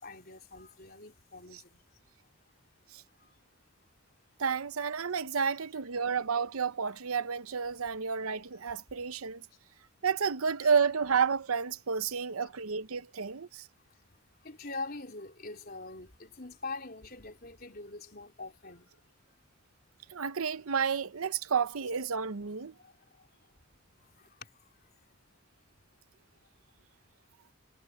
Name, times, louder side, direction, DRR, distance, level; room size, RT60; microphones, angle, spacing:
voice 1, 0.0-1.8 12.4-12.5 14.4-18.9, left 3 dB, 45° left, 4.3 m, -43 dB
voice 2, 4.4-9.4 10.0-13.7 20.1-22.7, right 6 dB, 80° right, 0.8 m, -31 dB
head